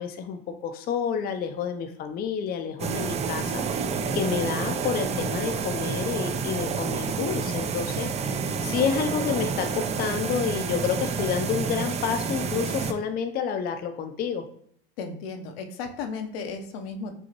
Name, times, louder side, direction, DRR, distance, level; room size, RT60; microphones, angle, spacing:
voice 1, 0.0-8.3 8.6-14.4, left 7 dB, 30° left, 7 dB, 0.5 m, -29 dB
sound 1, 2.8-12.9, right 5 dB, 20° right, 0.4 m, -29 dB
voice 2, 15.0-17.1, left 4 dB, 75° left, 6 dB, 0.8 m, -34 dB
5.3 x 2.7 x 2.9 m, 0.66 s
supercardioid pair, 105°, 30 cm